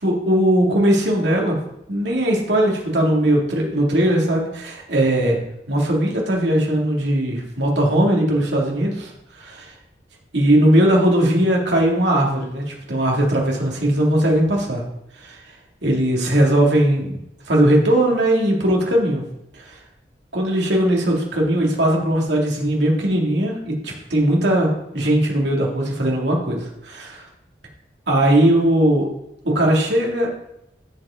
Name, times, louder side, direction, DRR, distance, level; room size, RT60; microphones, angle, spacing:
voice 1, 0.0-1.6 1.9-5.4 5.7-9.1 9.4-9.7 10.3-14.8 15.2-15.4 15.8-17.2 17.5-19.2 19.7-19.8 20.3-27.2 28.1-29.1 29.4-30.4, right 1 dB, 85° right, -1 dB, 2.3 m, -19 dB
13.5 x 4.9 x 3.7 m, 0.81 s
head